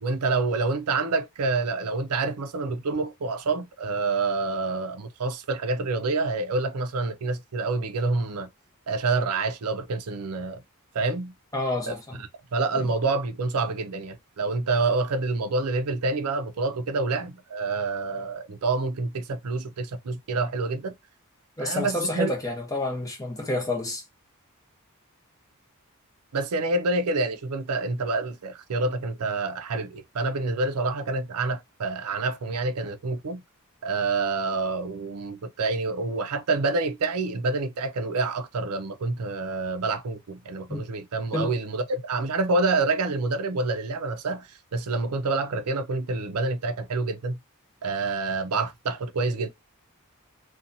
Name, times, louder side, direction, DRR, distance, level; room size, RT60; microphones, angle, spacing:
voice 1, 0.0-8.5 8.9-10.6 10.9-11.3 11.9-12.0 12.5-21.0 21.6-22.3 26.3-33.4 33.8-47.4 47.8-49.5, right 3 dB, 80° right, 0.5 m, -27 dB
voice 2, 11.5-12.2 12.8-12.9 21.6-24.0 40.7-40.8 41.3-41.5, left 2 dB, 15° left, 0.8 m, -29 dB
2.6 x 2.3 x 2.6 m
head